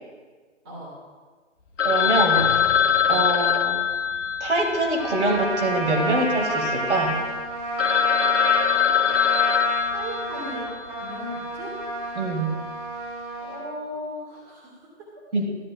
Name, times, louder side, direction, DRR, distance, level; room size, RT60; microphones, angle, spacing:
Telephone, 1.8-6.1 6.4-6.5 7.0-7.1 7.5-7.6 7.8-10.7, left 8 dB, 85° left, 0.9 m, -23 dB
voice 1, 1.8-2.5 3.1-3.8 4.4-7.2 12.2-12.5 15.3-15.5, right 2 dB, 70° right, 1 dB, 2.3 m, -24 dB
sound 1, 2.3-7.1, left 4 dB, 30° left, 0.7 m, -41 dB
Trumpet, 5.0-13.7, right 1 dB, 45° right, 3.3 m, -30 dB
voice 2, 9.9-10.7 11.0-11.7 13.4-14.9, equal, 20° right, -4 dB, 1.8 m, -36 dB
13.0 x 12.0 x 2.4 m, 1.4 s
hypercardioid pair, 160°, 36 cm